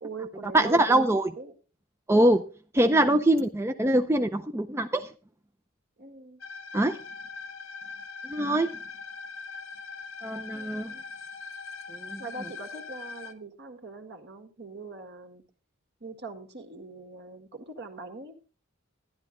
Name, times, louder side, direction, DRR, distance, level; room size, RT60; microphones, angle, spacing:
voice 1, 0.0-0.9 1.4-1.6 6.0-6.4 10.5-11.1 12.2-15.4 16.0-18.5, right 3 dB, 55° right, 5 dB, 1.8 m, -42 dB
voice 2, 0.5-1.3 2.1-2.4 2.7-5.1 6.7-7.0 8.2-8.7 10.2-10.9 11.9-12.2, right 1 dB, 15° right, 7 dB, 0.5 m, -23 dB
sound 1, 6.4-13.3, left 5 dB, 85° left, 1.1 m, -41 dB
12.0 x 11.0 x 3.8 m, 0.35 s
head